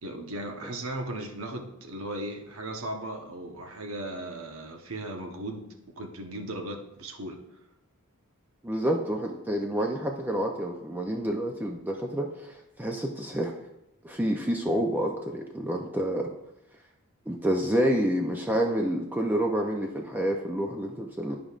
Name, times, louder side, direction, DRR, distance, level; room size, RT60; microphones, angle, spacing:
voice 1, 0.0-7.4, right 1 dB, 75° right, 3 dB, 1.0 m, -37 dB
voice 2, 8.6-13.5 14.0-16.3 17.3-21.4, equal, 10° right, 1 dB, 0.5 m, -28 dB
11.0 x 5.0 x 2.4 m, 0.86 s
head